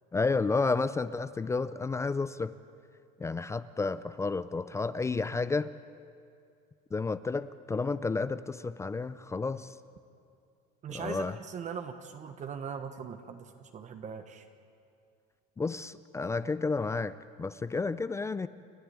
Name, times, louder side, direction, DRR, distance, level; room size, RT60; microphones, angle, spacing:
voice 1, 0.1-2.5 3.2-5.7 6.9-9.7 10.9-11.4 15.6-18.5, left 4 dB, 15° left, 15 dB, 0.4 m, -31 dB
voice 2, 10.8-14.4, right 6 dB, 35° right, 7 dB, 1.3 m, -40 dB
29.5 x 11.5 x 9.4 m, 2.4 s
supercardioid pair, 125°, 21 cm